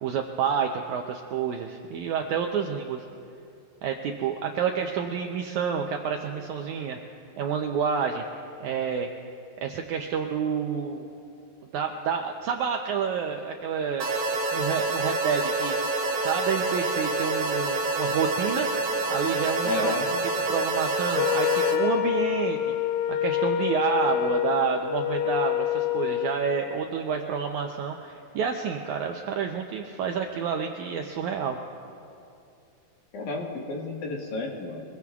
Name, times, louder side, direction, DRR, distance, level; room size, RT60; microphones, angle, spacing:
voice 1, 0.0-3.0 3.8-7.0 7.4-8.2 8.6-9.1 9.6-11.1 11.7-14.1 14.5-18.7 19.1-20.0 20.5-22.6 23.2-31.6, right 7 dB, 80° right, 3 dB, 1.7 m, -29 dB
sound 1, 14.0-21.8, right 3 dB, 60° right, 1.1 m, -27 dB
voice 2, 19.6-20.1 33.1-34.8, left 2 dB, 65° left, -1 dB, 2.9 m, -31 dB
Wind instrument woodwind instrument, 21.1-26.4, left 11 dB, 80° left, 2.1 m, -26 dB
24.5 x 22.0 x 2.4 m, 2.6 s
omnidirectional pair, 4.1 m